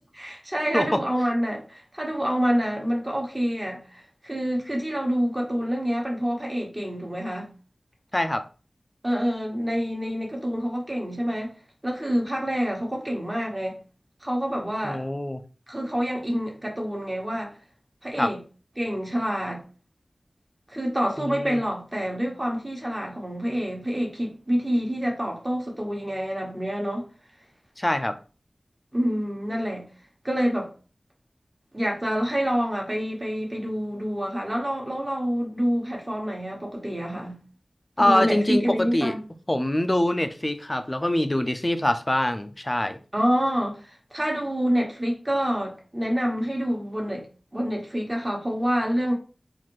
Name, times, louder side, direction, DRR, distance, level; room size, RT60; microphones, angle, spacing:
voice 1, 0.1-7.5 9.0-11.5 11.8-13.8 14.2-15.0 15.7-17.6 18.0-18.4 18.8-19.6 20.7-27.1 28.9-29.8 30.2-30.7 31.7-37.4 38.0-39.2 43.1-47.2 47.5-49.1, equal, 20° right, 1.2 m, -27 dB
voice 2, 8.1-8.4 14.8-15.4 18.2-18.3 21.2-21.6 27.8-28.2 38.0-39.1 39.5-43.0, left 1 dB, 25° left, 0.4 m, -24 dB
4.1 x 2.6 x 3.1 m
wide cardioid pair, 60°, 0 cm